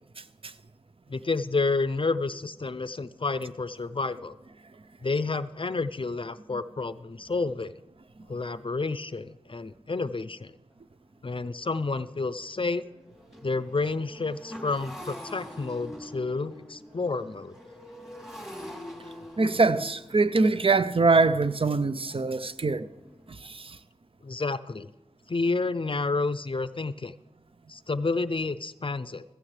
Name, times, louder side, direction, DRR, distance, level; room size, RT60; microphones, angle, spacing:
voice 1, 1.1-4.4 5.0-7.7 8.3-10.5 11.2-12.8 13.4-17.6 24.2-24.9 25.3-27.1 27.7-29.2, left 3 dB, 45° left, 0.5 m, -30 dB
Motorcycle, 10.7-10.8 11.3-11.4 11.7-23.3, left 1 dB, 5° right, 3.1 m, -45 dB
voice 2, 19.4-22.9 23.4-23.8, right 3 dB, 50° right, 0.6 m, -23 dB
15.5 x 14.5 x 3.3 m
cardioid pair, 40°, 12 cm